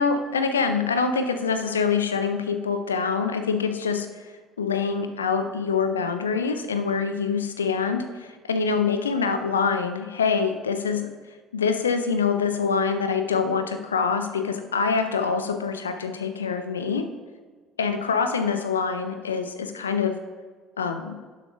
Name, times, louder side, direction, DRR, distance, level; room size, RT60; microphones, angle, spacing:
voice 1, 0.0-4.3 4.6-11.1 11.5-17.0 17.8-20.1 20.8-21.2, left 5 dB, 80° left, 8 dB, 0.4 m, -25 dB
12.0 x 7.3 x 2.3 m, 1.5 s
figure-of-eight pair, 55°, 0 cm